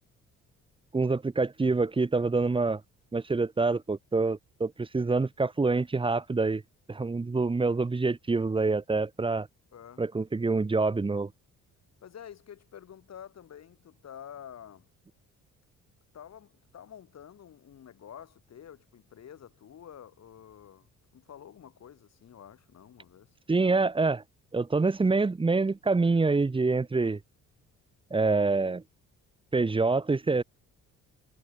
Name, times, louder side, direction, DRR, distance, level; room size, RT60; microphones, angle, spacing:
voice 1, 0.9-2.8 3.1-6.6 6.9-9.5 10.0-11.3 23.5-24.2 24.5-27.2 28.1-28.8 29.5-30.4, right 3 dB, 15° right, 0.9 m, -26 dB
voice 2, 9.7-10.0 12.0-14.9 16.1-23.3, left 9 dB, 60° left, 5.7 m, -49 dB
cardioid pair, 90°, 30 cm